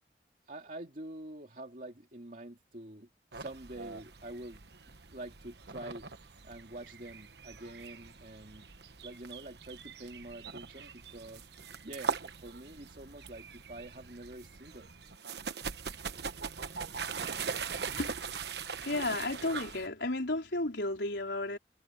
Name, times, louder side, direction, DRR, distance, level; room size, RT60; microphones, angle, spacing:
voice 1, 0.5-4.6 5.1-6.1 6.4-8.7 9.0-11.5 11.8-14.9, right 1 dB, 50° right, 2.7 m, -46 dB
sound 1, 3.3-19.9, right 5 dB, 75° right, 1.2 m, -41 dB
voice 2, 18.0-18.5 18.8-21.6, left 2 dB, 85° left, 4.4 m, -33 dB
head